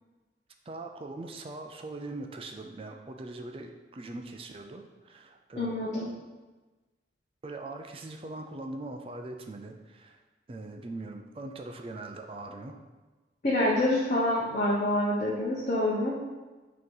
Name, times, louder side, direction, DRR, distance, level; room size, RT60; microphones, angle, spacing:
voice 1, 0.7-5.7 7.4-10.2 10.5-12.8, right 2 dB, 30° right, 4 dB, 0.4 m, -41 dB
voice 2, 5.5-6.1 13.4-16.2, left 1 dB, 40° left, -5 dB, 0.9 m, -27 dB
6.2 x 2.9 x 5.4 m, 1.2 s
head